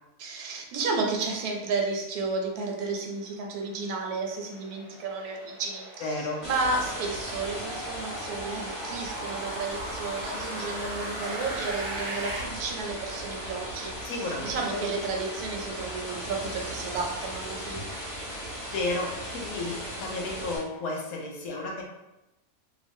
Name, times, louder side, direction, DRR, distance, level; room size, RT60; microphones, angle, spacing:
voice 1, 0.2-17.9, right 3 dB, 80° right, 1 dB, 1.1 m, -32 dB
sound 1, 2.8-12.4, right 1 dB, 50° right, 0.3 m, -40 dB
voice 2, 6.0-6.4 14.0-14.8 18.7-21.8, left 2 dB, 75° left, -1 dB, 1.0 m, -33 dB
sound 2, 6.4-20.6, equal, 45° left, 1.3 m, -37 dB
3.0 x 2.0 x 2.6 m, 0.94 s
omnidirectional pair, 1.6 m